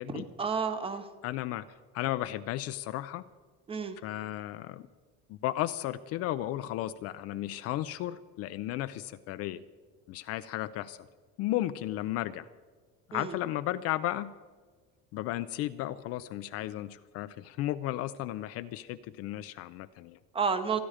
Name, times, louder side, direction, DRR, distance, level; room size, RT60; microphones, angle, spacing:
voice 1, 0.1-1.1 3.7-4.0 13.1-13.4 20.3-20.8, right 5 dB, 15° right, 10 dB, 0.8 m, -31 dB
voice 2, 1.2-3.2 4.0-4.9 5.3-9.6 10.1-11.0 11.4-12.5 13.1-14.3 15.1-20.2, left 14 dB, 45° left, 12 dB, 0.5 m, -34 dB
28.5 x 10.5 x 5.0 m, 1.4 s
cardioid pair, 160°, 34 cm